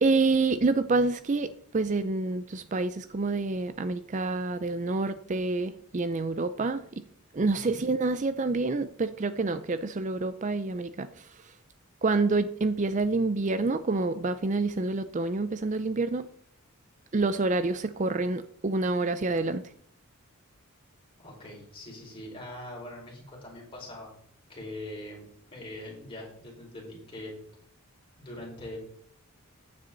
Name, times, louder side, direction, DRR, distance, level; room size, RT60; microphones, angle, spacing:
voice 1, 0.0-7.0 7.3-11.3 12.0-16.3 17.1-19.7, right 3 dB, 35° right, 0.4 m, -27 dB
voice 2, 7.5-7.8 21.2-24.1 24.5-25.2 25.5-27.4 28.2-28.8, left 1 dB, 25° left, 5.1 m, -42 dB
14.0 x 9.5 x 4.0 m
head